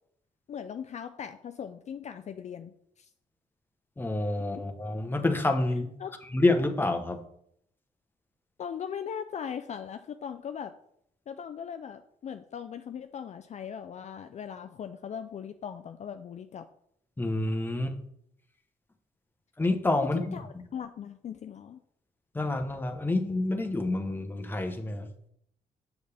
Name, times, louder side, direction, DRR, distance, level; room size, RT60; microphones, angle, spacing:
voice 1, 0.5-3.1 4.5-4.6 6.0-6.1 8.6-10.7 11.3-16.6 20.1-21.8, left 8 dB, 50° left, 8 dB, 0.4 m, -39 dB
voice 2, 4.0-6.0 6.3-7.2 17.2-18.0 19.6-20.6 22.3-25.1, left 2 dB, 15° left, 5 dB, 0.9 m, -28 dB
6.9 x 6.4 x 3.4 m, 0.71 s
cardioid pair, 90°, 15 cm